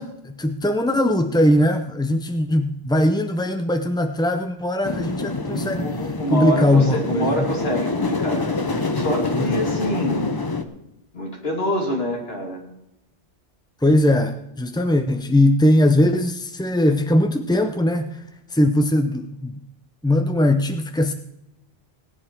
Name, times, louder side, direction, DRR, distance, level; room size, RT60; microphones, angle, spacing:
voice 1, 0.0-5.9 6.3-7.5 9.4-9.8 13.8-18.2 18.5-19.6 20.0-21.1, left 1 dB, 5° left, 7 dB, 0.3 m, -20 dB
sound 1, 4.8-10.6, left 3 dB, 25° left, 0.7 m, -26 dB
voice 2, 5.4-10.3 11.1-12.6, equal, 75° left, 1 dB, 2.8 m, -26 dB
18.5 x 8.9 x 4.5 m, 0.84 s
omnidirectional pair, 1.1 m